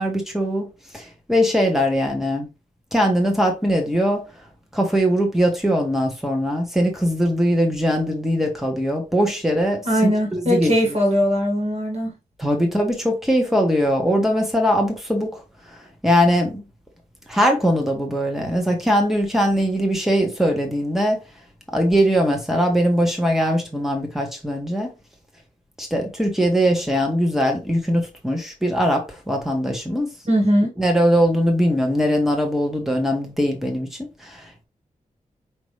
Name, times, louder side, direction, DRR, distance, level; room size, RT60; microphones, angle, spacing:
voice 1, 0.0-2.5 2.9-4.2 4.7-10.9 12.4-15.4 16.0-16.6 17.3-21.2 21.7-24.9 25.8-30.1 30.8-34.6, equal, ahead, 1.2 m, -21 dB
voice 2, 9.9-12.1 30.3-30.7, equal, 50° right, 1.8 m, -20 dB
5.1 x 2.9 x 3.2 m
wide cardioid pair, 180°, 14 cm